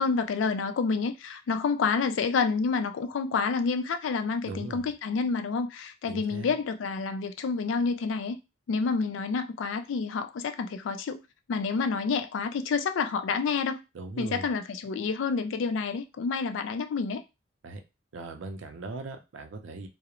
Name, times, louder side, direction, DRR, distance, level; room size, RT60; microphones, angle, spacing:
voice 1, 0.0-8.4 8.7-11.2 11.5-13.8 14.2-17.2, left 5 dB, 75° left, 0.3 m, -28 dB
voice 2, 4.4-4.9 6.1-6.5 13.9-14.5 17.6-17.8 18.1-19.9, right 3 dB, 85° right, 0.5 m, -39 dB
2.4 x 2.0 x 2.9 m
head